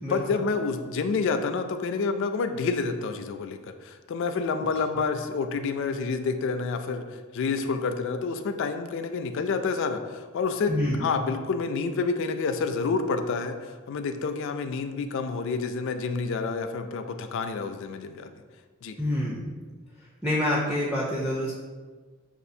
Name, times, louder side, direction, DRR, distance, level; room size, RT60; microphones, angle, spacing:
voice 1, 0.1-10.7 11.0-18.3 18.8-19.0, left 4 dB, 60° left, 7 dB, 0.3 m, -28 dB
voice 2, 10.7-11.0 19.0-19.5 20.2-21.5, left 1 dB, 5° right, -5 dB, 0.4 m, -27 dB
6.6 x 2.4 x 2.6 m, 1.4 s
head